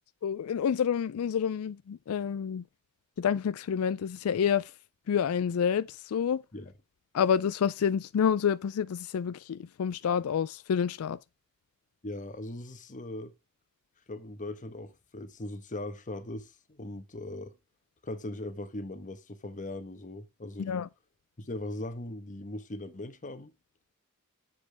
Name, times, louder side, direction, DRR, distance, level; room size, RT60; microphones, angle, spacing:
voice 1, 0.2-2.7 3.2-4.8 5.1-6.4 7.1-11.2 20.6-20.9, left 7 dB, 80° left, 0.4 m, -28 dB
voice 2, 12.0-13.3 14.1-17.6 18.0-20.8 21.4-23.5, left 1 dB, 35° left, 1.1 m, -39 dB
8.3 x 7.5 x 3.4 m
head